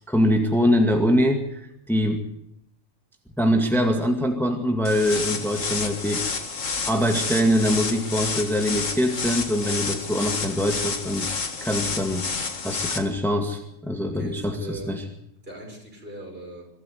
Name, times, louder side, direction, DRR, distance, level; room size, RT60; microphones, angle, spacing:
voice 1, 0.1-1.6 1.9-2.2 3.4-6.2 6.9-11.3 11.6-12.3 12.6-15.0, equal, ahead, 3 dB, 2.1 m, -23 dB
sound 1, 4.8-13.0, left 4 dB, 65° left, 2.2 m, -29 dB
voice 2, 14.0-15.0 15.4-16.7, right 2 dB, 40° right, 1 dB, 6.2 m, -39 dB
23.5 x 13.0 x 9.5 m, 0.79 s
omnidirectional pair, 1.4 m